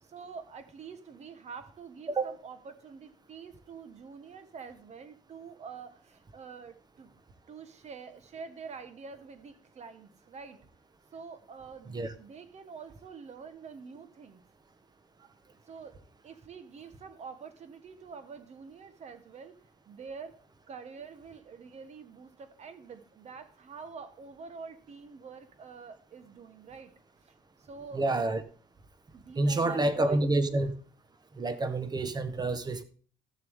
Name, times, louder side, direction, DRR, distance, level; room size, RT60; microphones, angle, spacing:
voice 1, 0.0-7.1 7.5-10.6 11.1-14.4 15.6-16.0 16.2-19.6 19.9-20.4 20.7-26.9 27.2-28.1 29.1-30.3, right 5 dB, 40° right, 1.3 m, -46 dB
voice 2, 27.9-28.4 29.4-30.7 31.3-32.8, right 2 dB, 25° right, 1.1 m, -28 dB
14.5 x 6.7 x 3.6 m
cardioid pair, 110°, 17 cm